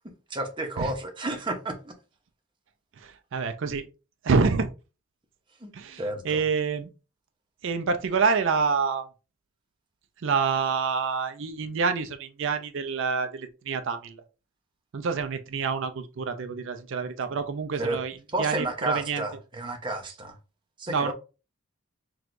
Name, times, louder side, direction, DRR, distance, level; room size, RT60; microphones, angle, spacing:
voice 1, 0.3-1.9 5.6-5.7 6.0-6.4 17.8-18.0 18.3-20.4 20.8-21.1, right 2 dB, 20° right, 0.7 m, -31 dB
voice 2, 3.0-3.9 4.2-4.7 5.7-6.9 7.6-9.0 10.2-14.2 14.9-19.2 20.9-21.1, right 5 dB, 55° right, 0.4 m, -27 dB
6.0 x 2.3 x 2.5 m
head